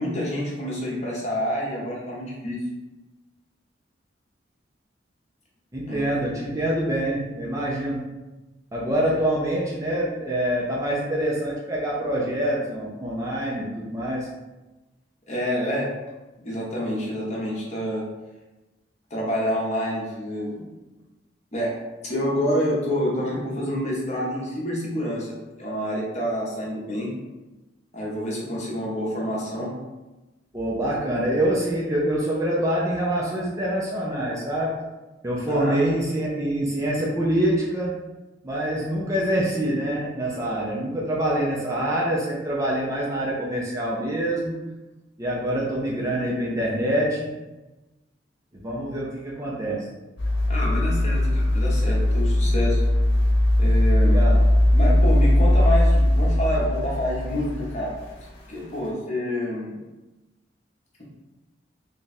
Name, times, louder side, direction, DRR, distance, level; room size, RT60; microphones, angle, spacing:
voice 1, 0.0-2.6 5.9-6.1 15.3-15.9 16.4-18.0 19.1-20.6 21.5-21.7 22.0-25.3 25.6-27.1 27.9-29.7 35.5-35.8 50.5-52.8 53.6-54.2 54.7-57.9 58.5-59.8, equal, 35° left, -4 dB, 1.0 m, -27 dB
voice 2, 5.7-8.1 8.7-14.3 30.5-34.7 35.2-38.0 38.4-44.6 45.2-47.3 48.5-49.9 54.0-54.4, right 1 dB, 15° right, -5 dB, 0.5 m, -25 dB
sound 1, 50.2-58.4 58.8-58.9, left 1 dB, 65° left, 0.9 m, -19 dB
3.4 x 2.4 x 4.1 m, 1.1 s
head